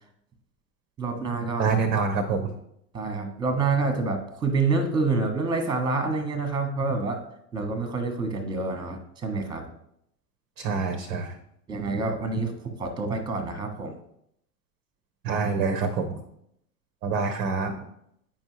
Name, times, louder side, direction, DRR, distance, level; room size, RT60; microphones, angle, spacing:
voice 1, 1.0-1.7 2.9-7.2 7.5-9.7 11.7-14.0, right 3 dB, 10° right, 7 dB, 0.9 m, -27 dB
voice 2, 1.6-2.5 10.6-11.4 15.2-16.2 17.0-17.8, right 5 dB, 25° right, 6 dB, 0.5 m, -26 dB
8.7 x 5.4 x 3.0 m, 0.75 s
figure-of-eight pair, 95°, 50 cm